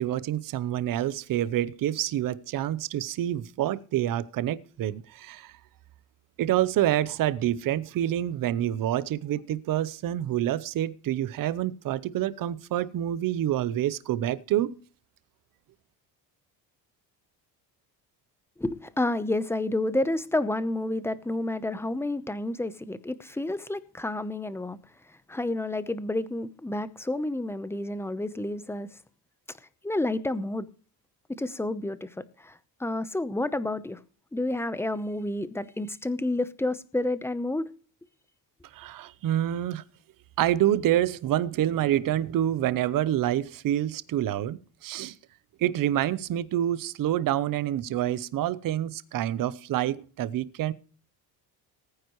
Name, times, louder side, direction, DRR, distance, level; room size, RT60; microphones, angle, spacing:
voice 1, 0.0-5.5 6.4-14.8 38.7-39.8 40.4-45.2 45.6-50.7, right 12 dB, 50° right, 0.8 m, -27 dB
voice 2, 18.6-24.8 25.3-28.9 29.8-30.7 31.3-34.0 34.3-37.7, left 2 dB, 5° left, 0.8 m, -30 dB
19.5 x 9.7 x 3.1 m
cardioid pair, 130°, 42 cm